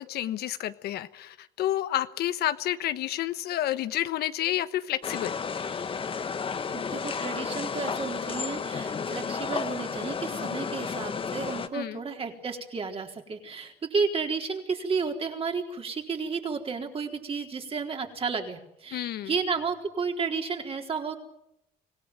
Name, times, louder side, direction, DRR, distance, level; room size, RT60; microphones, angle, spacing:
voice 1, 0.0-5.4 11.7-12.0 18.9-19.3, left 13 dB, 70° left, 12 dB, 1.2 m, -30 dB
sound 1, 5.0-11.7, left 5 dB, 30° left, 1.4 m, -32 dB
voice 2, 6.7-21.2, right 5 dB, 35° right, 3 dB, 4.1 m, -32 dB
25.5 x 17.5 x 9.2 m, 0.81 s
cardioid pair, 110°, 17 cm